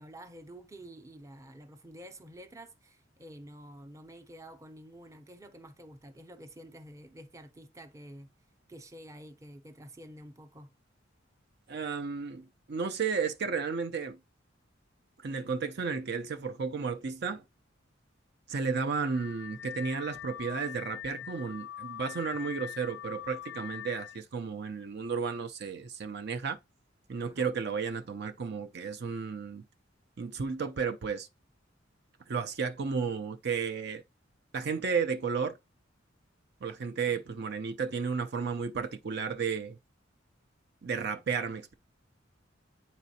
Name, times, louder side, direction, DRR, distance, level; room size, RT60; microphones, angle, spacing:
voice 1, 0.0-8.3 8.7-10.7 27.2-27.5 37.1-37.2, right 1 dB, 15° right, 0.6 m, -49 dB
voice 2, 11.7-14.2 15.2-17.4 18.5-26.6 27.1-29.6 30.2-31.3 32.3-34.0 34.5-35.6 36.6-39.8 40.8-41.7, right 5 dB, 60° right, 0.5 m, -33 dB
Car / Alarm, 18.7-24.2, left 10 dB, 70° left, 0.4 m, -43 dB
9.2 x 4.1 x 2.8 m
head